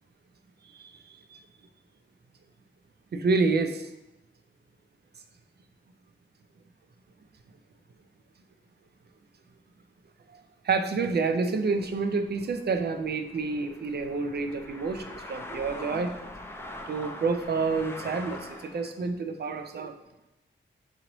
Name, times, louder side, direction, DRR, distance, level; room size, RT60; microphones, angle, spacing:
voice 1, 0.8-1.4 3.1-3.9 10.3-16.1 16.9-20.0, right 4 dB, 55° right, 7 dB, 0.4 m, -29 dB
sound 1, 11.8-18.9, left 1 dB, 10° left, 0.4 m, -43 dB
4.0 x 2.9 x 3.0 m, 0.93 s
wide cardioid pair, 75°, 21 cm